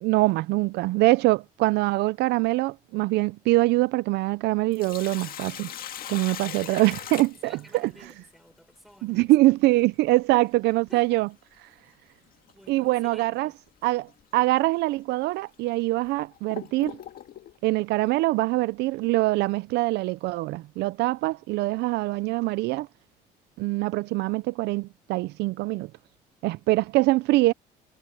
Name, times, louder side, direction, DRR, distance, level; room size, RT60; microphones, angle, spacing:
voice 1, 0.0-5.7 6.1-7.5 9.0-11.3 12.7-13.5 13.8-17.0 17.6-22.9 23.6-25.9 26.4-27.5, right 19 dB, 80° right, 0.5 m, -24 dB
Sink (filling or washing), 4.5-8.1 10.5-10.6 12.5-12.7 13.2-13.3 14.1-14.2 14.9-15.0 15.7-17.6, left 11 dB, 60° left, 1.7 m, -40 dB
voice 2, 5.9-6.8 7.3-9.3 10.9-11.3 12.5-13.6, equal, ahead, 6.6 m, -53 dB
cardioid pair, 110°, 17 cm